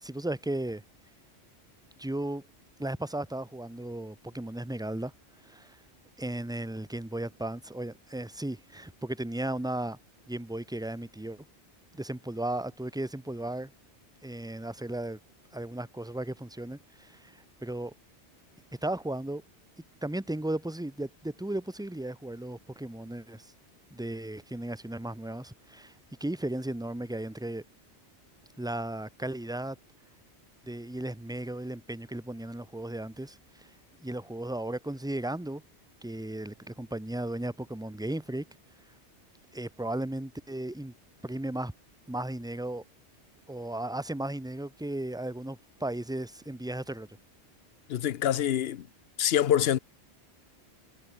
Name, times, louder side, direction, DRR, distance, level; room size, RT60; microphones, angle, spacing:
voice 1, 0.0-0.8 2.0-2.4 2.8-5.1 5.4-5.8 6.2-10.0 10.3-11.4 11.9-13.7 14.2-15.2 15.5-17.9 18.8-19.4 20.0-23.5 23.9-25.9 26.2-27.6 28.6-29.8 30.7-33.7 34.0-35.6 36.0-38.5 39.5-40.9 41.2-41.7 42.1-42.8 43.5-47.1, right 1 dB, 5° right, 0.8 m, -35 dB
voice 2, 47.9-48.9 49.2-49.8, left 10 dB, 65° left, 0.9 m, -25 dB
omnidirectional pair, 1.2 m